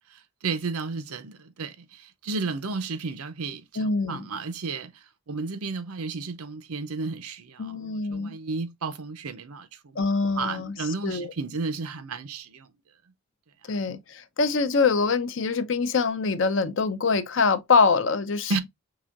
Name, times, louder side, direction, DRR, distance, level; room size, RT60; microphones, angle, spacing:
voice 1, 0.1-10.0 10.4-12.7 18.5-18.6, right 4 dB, 90° right, 0.7 m, -33 dB
voice 2, 3.8-4.2 7.6-8.3 10.0-10.8 11.0-11.3 13.7-18.5, left 4 dB, 55° left, 0.5 m, -24 dB
4.8 x 3.4 x 2.4 m
head